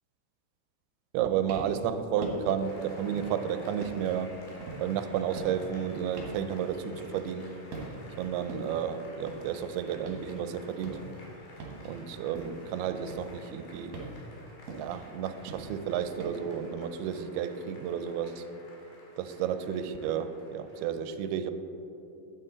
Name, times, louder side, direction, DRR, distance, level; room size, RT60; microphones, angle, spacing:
voice 1, 1.1-4.4 4.8-7.5 8.2-11.0 11.9-14.0 14.8-18.4 19.2-21.5, right 8 dB, 85° right, 10 dB, 2.5 m, -32 dB
sound 1, 1.3-1.9 2.2-2.6 3.1-3.4 3.8-7.5 7.7-8.2 8.5-10.4 10.7-12.7 13.1-16.3, right 3 dB, 60° right, 2.2 m, -42 dB
Applause, 2.6-20.9, left 2 dB, 70° left, 3.4 m, -53 dB
9.0 x 8.6 x 3.9 m, 2.9 s
omnidirectional pair, 4.5 m